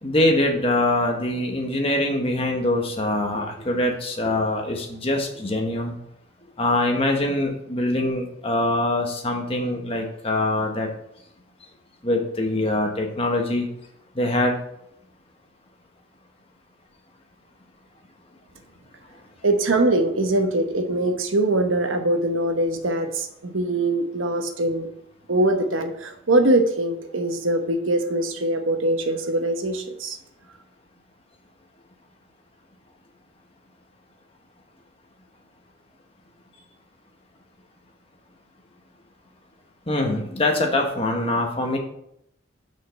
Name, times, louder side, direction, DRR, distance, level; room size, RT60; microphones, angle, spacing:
voice 1, 0.0-5.9 6.6-10.9 12.0-13.7 14.1-14.6 39.9-41.8, left 1 dB, 30° left, 1 dB, 1.3 m, -23 dB
voice 2, 19.4-24.9 25.3-30.2, right 1 dB, 85° right, 6 dB, 1.0 m, -22 dB
6.6 x 5.1 x 6.5 m, 0.75 s
head